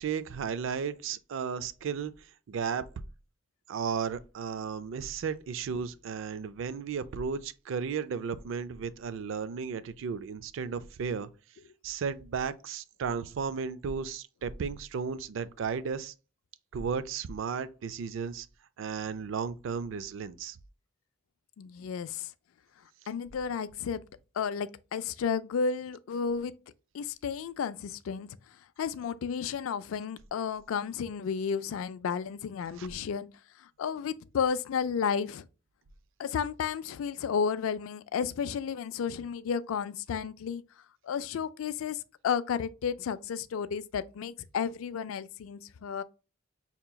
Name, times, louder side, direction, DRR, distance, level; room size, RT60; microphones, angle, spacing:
voice 1, 0.0-2.8 3.7-11.3 11.8-16.1 16.7-18.5 18.8-20.6 32.8-32.9, right 6 dB, 70° right, 0.4 m, -34 dB
voice 2, 21.6-22.3 23.1-24.0 24.4-26.5 26.9-28.4 28.8-33.3 33.6-35.5 36.2-40.6 41.0-46.0, left 6 dB, 85° left, 0.3 m, -32 dB
5.6 x 2.9 x 2.2 m
head